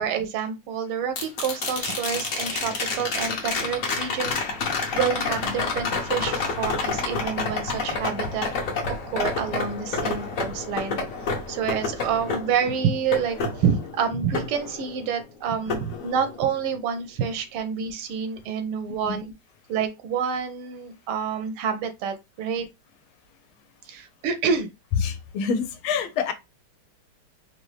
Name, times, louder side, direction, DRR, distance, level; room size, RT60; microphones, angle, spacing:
voice 1, 0.0-4.4 4.9-8.5 8.9-11.0 11.5-19.3 19.7-22.7 23.8-24.7, right 7 dB, 85° right, 1.6 m, -28 dB
sound 1, 1.2-15.3 15.7-16.7 19.0-19.1, left 4 dB, 50° left, 1.0 m, -29 dB
voice 2, 24.9-26.3, left 6 dB, 80° left, 1.5 m, -26 dB
4.3 x 2.7 x 3.2 m
omnidirectional pair, 2.3 m